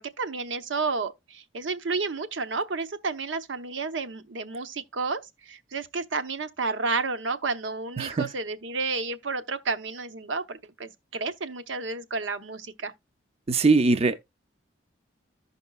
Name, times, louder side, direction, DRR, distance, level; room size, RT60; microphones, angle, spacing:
voice 1, 0.0-12.9, right 4 dB, 75° right, 0.8 m, -31 dB
voice 2, 8.0-8.3 13.5-14.2, right 3 dB, 35° right, 0.5 m, -21 dB
15.0 x 5.3 x 2.3 m
head